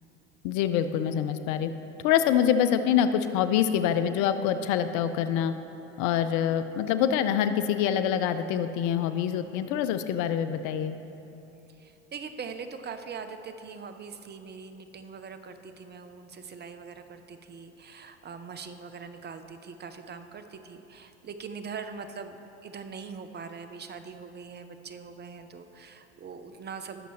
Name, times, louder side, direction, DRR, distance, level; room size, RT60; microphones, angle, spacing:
voice 1, 0.4-1.7 2.0-5.5 6.0-11.0, left 9 dB, 65° left, 10 dB, 0.7 m, -25 dB
voice 2, 11.8-27.1, right 5 dB, 30° right, 9 dB, 0.8 m, -42 dB
19.5 x 6.8 x 3.2 m, 2.8 s
hypercardioid pair, 75°, 33 cm